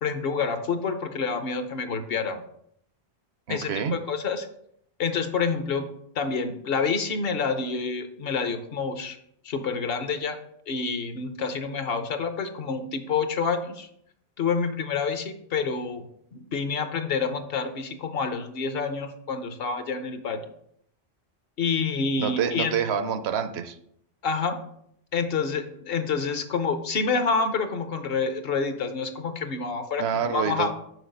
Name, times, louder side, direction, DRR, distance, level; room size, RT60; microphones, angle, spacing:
voice 1, 0.0-2.4 3.5-4.5 5.0-5.8 6.2-9.2 9.4-10.4 10.7-13.9 14.4-16.0 16.3-20.4 21.6-22.7 24.2-24.6 25.1-30.7, left 5 dB, 60° left, 8 dB, 0.9 m, -28 dB
voice 2, 3.5-4.0 22.2-23.8 30.0-30.7, right 7 dB, 70° right, 9 dB, 0.9 m, -27 dB
6.3 x 4.7 x 5.2 m, 0.71 s
omnidirectional pair, 1.1 m